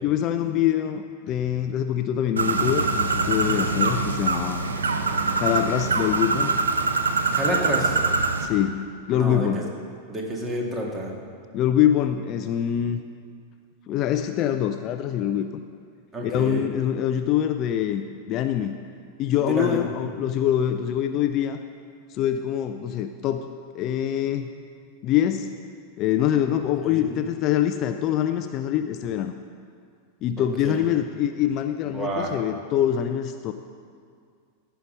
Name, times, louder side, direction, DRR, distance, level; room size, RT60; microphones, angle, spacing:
voice 1, 0.0-4.7 5.3-6.6 8.4-9.7 11.5-13.0 13.9-15.5 16.2-18.8 19.2-21.6 22.1-23.5 23.7-24.5 25.0-25.6 26.0-29.3 30.2-33.5, left 10 dB, 35° left, 8 dB, 0.4 m, -24 dB
Bird, 2.4-8.5, right 4 dB, 70° right, 0.6 m, -24 dB
voice 2, 7.3-8.0 9.1-9.5 10.1-11.1 16.1-16.7 19.5-19.8 26.8-27.2 30.4-30.7 31.8-32.3, right 1 dB, 20° right, -1 dB, 1.8 m, -29 dB
14.5 x 5.7 x 5.3 m, 2.2 s
figure-of-eight pair, 90°, 0 cm